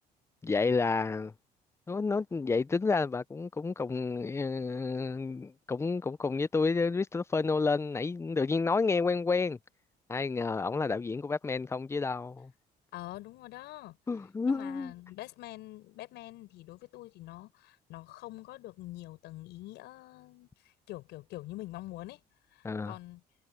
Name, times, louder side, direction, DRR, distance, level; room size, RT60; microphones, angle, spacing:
voice 1, 0.4-1.3 1.9-9.6 10.1-12.5 14.1-14.9 22.6-22.9, left 4 dB, 15° left, 0.5 m, -30 dB
voice 2, 12.9-14.0 14.4-22.2 22.5-23.2, left 17 dB, 85° left, 7.7 m, -45 dB
cardioid pair, 110°, 17 cm